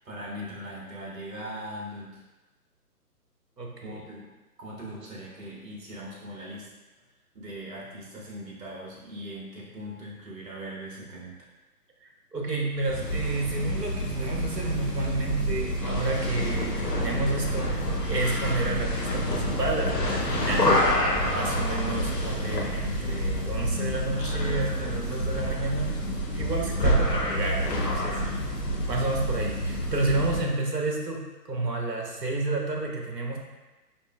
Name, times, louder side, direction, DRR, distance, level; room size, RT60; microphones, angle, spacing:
voice 1, 0.0-2.2 3.8-4.2 4.6-6.7 7.3-11.3, equal, 55° right, -4 dB, 1.1 m, -40 dB
voice 2, 3.6-4.0 12.0-20.7 21.3-26.1 26.3-28.2 28.9-33.4, right 2 dB, 90° right, 0 dB, 0.7 m, -30 dB
sound 1, 12.8-30.5, equal, 90° left, 0.8 m, -28 dB
4.3 x 2.7 x 2.3 m, 1.1 s
figure-of-eight pair, 135°, 48 cm